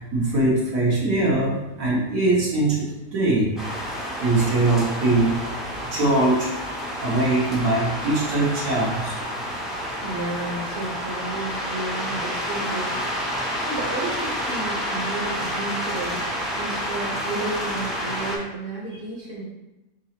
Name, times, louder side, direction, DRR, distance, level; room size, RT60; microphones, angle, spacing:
voice 1, 0.0-3.5 4.0-5.6 5.8-6.5 7.0-9.1, right 2 dB, 75° right, -5 dB, 1.7 m, -22 dB
sound 1, 3.6-18.4, equal, ahead, 0.6 m, -29 dB
voice 2, 9.6-13.0 13.6-16.3 16.6-19.4, right 2 dB, 40° right, -3 dB, 1.1 m, -32 dB
4.1 x 3.9 x 2.9 m, 0.98 s
omnidirectional pair, 1.5 m